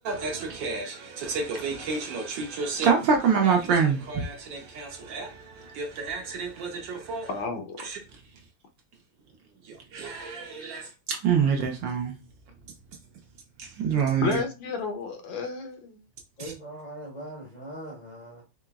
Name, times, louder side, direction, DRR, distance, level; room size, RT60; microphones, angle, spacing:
voice 1, 0.0-7.3 7.8-8.0 9.6-12.1 13.6-14.4, right 6 dB, 70° right, 1.2 m, -27 dB
voice 2, 7.3-7.8 14.2-16.0, left 4 dB, 75° left, 1.3 m, -31 dB
voice 3, 16.4-18.4, right 1 dB, 35° left, 0.7 m, -40 dB
4.5 x 2.9 x 2.3 m
omnidirectional pair, 2.4 m